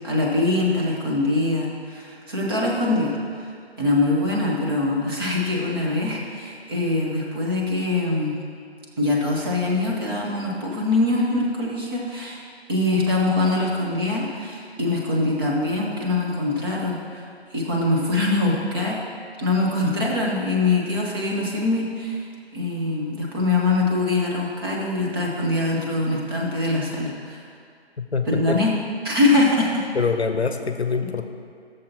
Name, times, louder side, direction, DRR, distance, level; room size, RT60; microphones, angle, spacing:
voice 1, 0.0-3.5 3.8-8.3 9.0-12.4 12.7-17.2 17.5-19.0 19.4-22.2 22.5-27.4 28.3-28.7 29.0-29.8, left 2 dB, 20° right, -3 dB, 1.1 m, -23 dB
voice 2, 28.1-28.6 29.9-31.3, left 5 dB, 75° left, 7 dB, 0.8 m, -24 dB
15.5 x 6.8 x 2.9 m, 2.3 s
figure-of-eight pair, 150°, 32 cm